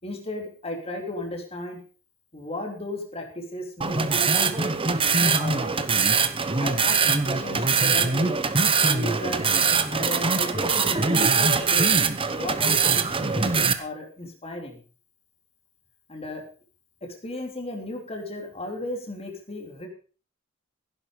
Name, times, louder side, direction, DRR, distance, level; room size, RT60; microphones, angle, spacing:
voice 1, 0.0-1.8 2.3-4.8 5.2-6.0 6.6-8.4 8.8-9.5 9.9-11.8 12.3-14.8 16.1-16.4 17.2-19.9, left 1 dB, 30° left, 2 dB, 3.3 m, -35 dB
sound 1, 3.8-13.7, right 5 dB, 25° right, 1.1 m, -22 dB
16.0 x 11.0 x 5.2 m, 0.39 s
head